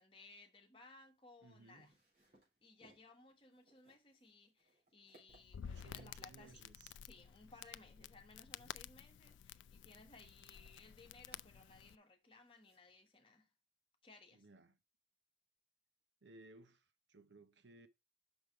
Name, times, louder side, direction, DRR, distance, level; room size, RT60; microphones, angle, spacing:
voice 1, 0.0-1.9 2.6-6.7 7.0-13.5 14.0-14.5, left 3 dB, 30° left, 1.3 m, -61 dB
sound 1, 1.2-13.1, right 2 dB, 45° right, 3.8 m, -73 dB
voice 2, 1.4-1.9 5.6-7.0 14.3-14.8 16.2-17.9, right 3 dB, 70° right, 0.8 m, -60 dB
Crackle, 5.3-12.0, left 9 dB, 80° left, 0.3 m, -53 dB
6.2 x 5.3 x 4.6 m
head